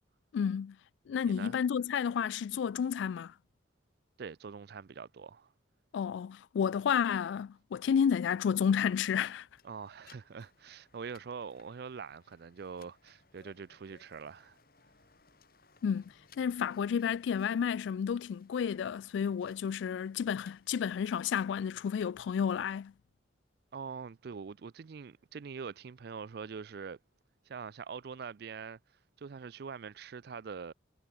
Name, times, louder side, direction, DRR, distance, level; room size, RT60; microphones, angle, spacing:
voice 1, 0.3-0.8 1.1-3.3 5.9-9.5 15.8-16.0 16.4-22.9, left 7 dB, 70° left, 0.3 m, -31 dB
voice 2, 1.2-1.6 4.2-5.5 9.6-14.6 23.7-27.0 27.5-28.8 29.2-30.7, right 5 dB, 55° right, 0.4 m, -44 dB
sound 1, 9.1-22.1, left 5 dB, 50° left, 2.4 m, -65 dB
head